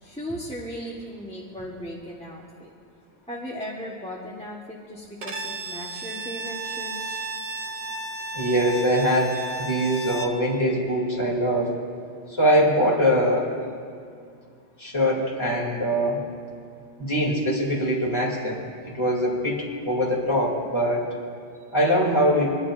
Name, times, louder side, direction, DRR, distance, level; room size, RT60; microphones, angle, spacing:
voice 1, 0.0-2.7 3.3-7.2, equal, 5° left, -6 dB, 1.1 m, -37 dB
Bowed string instrument, 5.2-10.4, right 2 dB, 40° right, 0.7 m, -33 dB
voice 2, 8.3-9.3 9.6-11.7 12.3-13.5 14.8-16.2 17.0-18.6 18.9-21.1 21.7-22.6, equal, 25° left, -5 dB, 2.6 m, -22 dB
24.5 x 11.0 x 2.5 m, 2.3 s
omnidirectional pair, 1.1 m